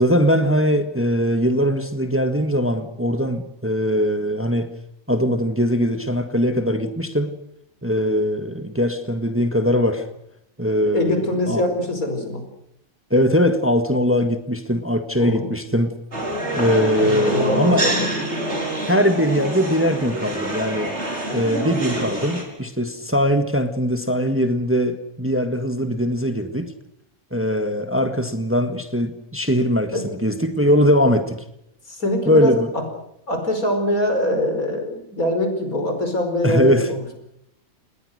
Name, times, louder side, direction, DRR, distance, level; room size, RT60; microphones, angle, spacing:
voice 1, 0.0-4.7 5.1-7.4 7.8-10.1 10.6-11.6 13.1-15.9 16.5-17.9 18.9-20.9 21.3-26.7 27.3-31.4 32.3-32.7 36.4-36.9, equal, 10° right, 7 dB, 1.6 m, -21 dB
voice 2, 10.8-12.4 15.2-15.5 17.0-18.1 29.9-30.0 31.9-32.8 33.3-37.2, left 1 dB, 85° left, 5 dB, 5.5 m, -23 dB
sound 1, 16.1-22.4, right 1 dB, 55° right, 5.2 m, -26 dB
29.0 x 20.0 x 6.6 m, 0.77 s
omnidirectional pair, 1.4 m